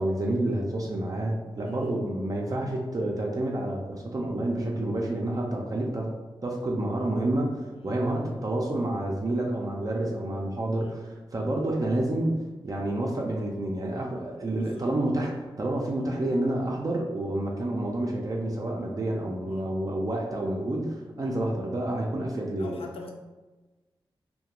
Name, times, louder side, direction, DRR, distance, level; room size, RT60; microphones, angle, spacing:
voice 1, 0.0-6.1 6.4-12.4 12.6-22.7, right 1 dB, 40° right, -1 dB, 0.4 m, -29 dB
voice 2, 14.5-14.9 19.5-19.7 21.2-21.3 22.6-23.1, left 4 dB, 85° left, 2 dB, 0.4 m, -45 dB
2.3 x 2.2 x 2.9 m, 1.2 s
cardioid pair, 60°, 9 cm